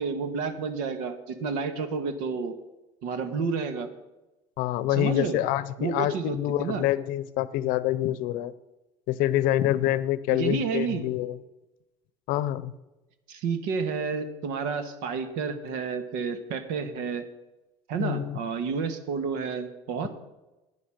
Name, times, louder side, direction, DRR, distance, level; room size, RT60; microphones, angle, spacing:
voice 1, 0.0-2.5 3.0-3.9 4.9-5.4 5.8-6.8 10.3-11.0 13.3-17.2 17.9-20.1, right 5 dB, 85° right, 10 dB, 1.5 m, -30 dB
voice 2, 4.6-8.5 9.1-11.4 12.3-12.7 18.0-18.4, left 13 dB, 75° left, 17 dB, 0.7 m, -26 dB
11.0 x 9.6 x 5.8 m, 1.0 s
cardioid pair, 115°, 14 cm